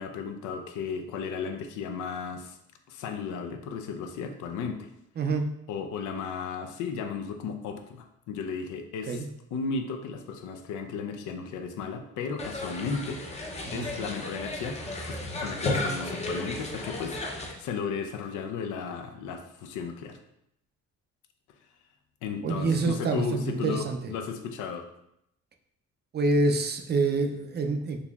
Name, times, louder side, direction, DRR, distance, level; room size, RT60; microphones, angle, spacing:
voice 1, 0.0-2.6 2.9-4.9 5.7-9.2 9.5-13.2 13.7-14.8 15.1-20.2 22.2-24.9, left 5 dB, 80° left, 6 dB, 0.5 m, -34 dB
voice 2, 5.2-5.5 9.1-9.3 13.6-13.9 22.4-24.0 26.1-28.0, right 3 dB, 35° right, 5 dB, 0.4 m, -26 dB
sound 1, 12.4-17.5, left 2 dB, 20° left, 0.5 m, -33 dB
3.9 x 2.9 x 2.3 m, 0.79 s
cardioid pair, 90°, 30 cm